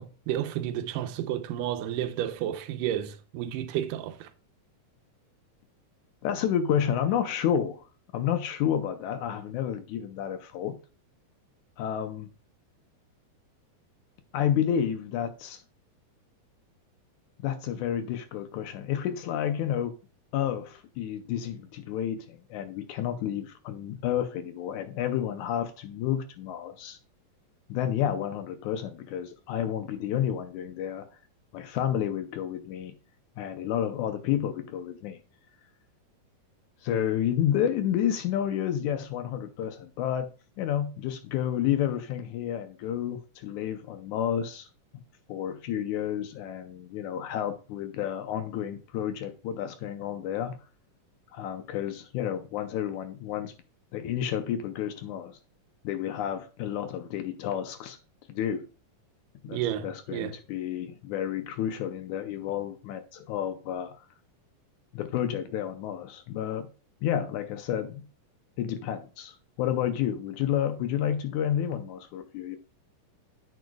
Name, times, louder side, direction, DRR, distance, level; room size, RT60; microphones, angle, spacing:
voice 1, 0.0-4.3 59.5-60.4, right 11 dB, 85° right, 2.3 m, -31 dB
voice 2, 6.2-7.9 8.1-10.8 11.8-12.3 14.3-15.6 17.4-19.9 20.3-27.0 27.7-31.1 31.5-33.0 33.4-35.2 36.8-40.3 40.6-44.7 45.3-50.6 51.3-53.5 53.9-55.4 55.8-58.0 58.3-58.7 59.4-64.1 64.9-66.7 67.0-68.1 68.6-72.6, left 10 dB, 75° left, 2.0 m, -30 dB
9.6 x 7.9 x 2.3 m
omnidirectional pair, 3.8 m